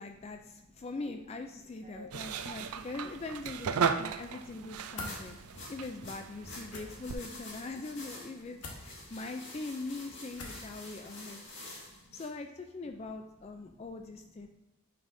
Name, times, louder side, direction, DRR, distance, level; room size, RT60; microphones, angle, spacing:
voice 1, 0.0-5.4 5.7-11.4 12.1-14.5, left 3 dB, 30° left, 5 dB, 0.3 m, -42 dB
voice 2, 1.8-2.4 4.5-5.7 6.7-6.8 7.3-7.4 8.7-9.2 11.0-12.2 13.7-13.8, equal, 35° right, -4 dB, 1.7 m, -57 dB
sound 1, 2.1-7.1, right 6 dB, 80° right, 0.4 m, -36 dB
sound 2, 4.9-5.2 6.7-6.9 8.6-8.8 10.3-10.7, left 2 dB, 90° left, 1.3 m, -42 dB
sound 3, 5.0-12.3, left 1 dB, 55° left, 1.8 m, -48 dB
9.4 x 5.4 x 2.6 m, 1.0 s
head